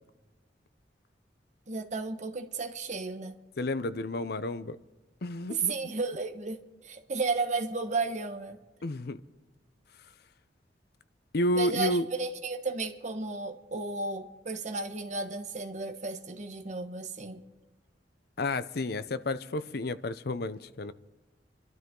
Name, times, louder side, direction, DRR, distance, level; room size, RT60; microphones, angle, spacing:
voice 1, 1.7-3.4 5.5-6.6 6.8-8.6 11.6-17.4, right 4 dB, 40° right, 1.3 m, -33 dB
voice 2, 3.6-4.8 5.2-5.7 8.8-9.2 11.3-12.1 18.4-20.9, left 1 dB, 60° left, 0.7 m, -31 dB
27.0 x 12.5 x 3.8 m
head